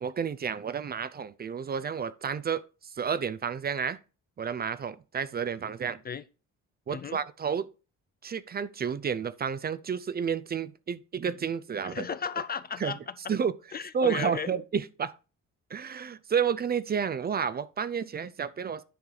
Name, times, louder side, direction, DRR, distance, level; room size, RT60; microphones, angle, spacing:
voice 1, 0.0-4.0 4.4-6.0 6.9-7.7 8.2-12.0 12.8-12.9 13.3-13.5 13.9-15.2 15.7-18.8, right 7 dB, 30° right, 0.4 m, -31 dB
voice 2, 11.8-13.3 13.7-14.5, left 6 dB, 30° left, 0.4 m, -34 dB
10.0 x 4.7 x 3.9 m
cardioid pair, 90°, 30 cm